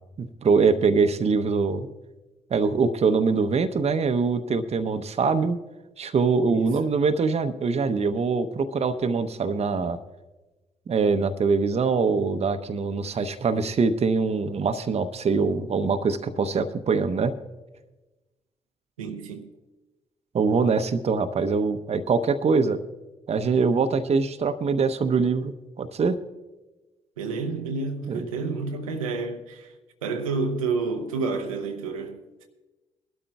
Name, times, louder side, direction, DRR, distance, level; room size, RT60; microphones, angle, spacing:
voice 1, 0.2-1.9 2.5-5.6 6.0-10.0 10.9-17.3 20.3-22.8 23.3-26.2 28.1-28.3, right 4 dB, 40° right, 0.8 m, -23 dB
voice 2, 19.0-19.5 27.2-29.8 30.0-32.5, right 4 dB, 85° right, 0.7 m, -30 dB
21.5 x 12.0 x 2.3 m
figure-of-eight pair, 40°, 17 cm